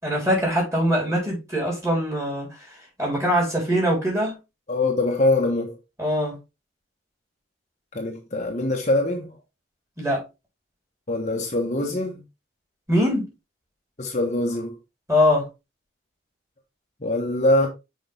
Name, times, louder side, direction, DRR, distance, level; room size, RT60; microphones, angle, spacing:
voice 1, 0.0-2.6 3.0-4.4 6.0-6.4 10.0-10.2 12.9-13.3 15.1-15.5, equal, 15° right, 3.7 m, -22 dB
voice 2, 4.7-5.8 7.9-9.4 11.1-12.2 14.0-14.8 17.0-17.7, left 2 dB, 35° left, 1.2 m, -23 dB
6.2 x 5.1 x 3.4 m
head